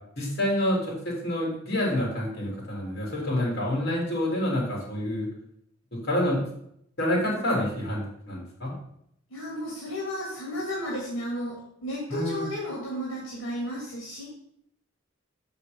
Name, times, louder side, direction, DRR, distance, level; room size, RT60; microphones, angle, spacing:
voice 1, 0.2-5.3 5.9-6.5 7.0-8.7 12.1-12.5, left 1 dB, 55° left, -3 dB, 3.2 m, -28 dB
voice 2, 9.3-11.5 11.8-14.2, equal, 75° left, -4 dB, 2.1 m, -33 dB
6.6 x 5.6 x 5.2 m, 0.73 s
head